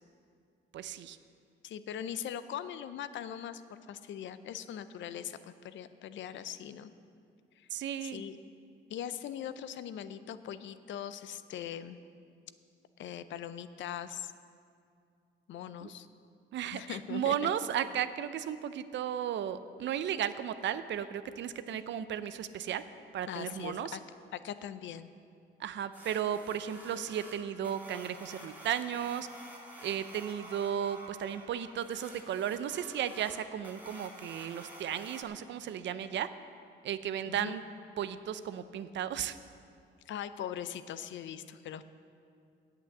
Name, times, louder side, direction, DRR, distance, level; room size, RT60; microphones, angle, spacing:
voice 1, 0.7-1.2 7.7-8.2 15.8-15.9 16.5-22.8 23.1-24.0 25.6-29.3 29.8-36.3 36.8-37.6 38.0-39.4, right 9 dB, 65° right, 12 dB, 0.5 m, -35 dB
voice 2, 1.6-6.9 7.6-7.7 8.0-8.4 8.9-12.0 13.0-14.3 15.5-16.1 16.7-17.5 23.3-24.0 24.3-25.1 37.3-37.5 40.1-41.9, left 9 dB, 70° left, 13 dB, 0.5 m, -41 dB
sound 1, 25.9-35.2, right 1 dB, 10° right, 2.1 m, -50 dB
8.5 x 8.1 x 7.8 m, 2.4 s
cardioid pair, 90°, 20 cm